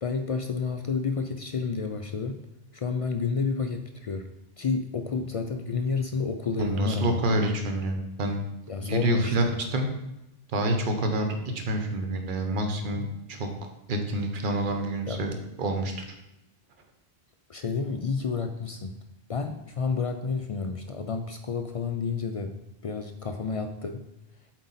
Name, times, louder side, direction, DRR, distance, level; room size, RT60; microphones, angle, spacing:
voice 1, 0.0-2.4 2.7-4.3 4.6-7.2 8.7-9.5 13.0-13.1 15.0-15.3 17.5-19.0 19.3-24.0, left 5 dB, 60° left, 6 dB, 0.3 m, -30 dB
voice 2, 6.6-8.5 8.8-9.4 9.7-9.9 10.5-11.3 11.5-13.5 13.9-15.3 15.6-15.9, right 1 dB, 55° right, 4 dB, 1.0 m, -27 dB
7.7 x 4.5 x 4.1 m, 0.93 s
omnidirectional pair, 1.1 m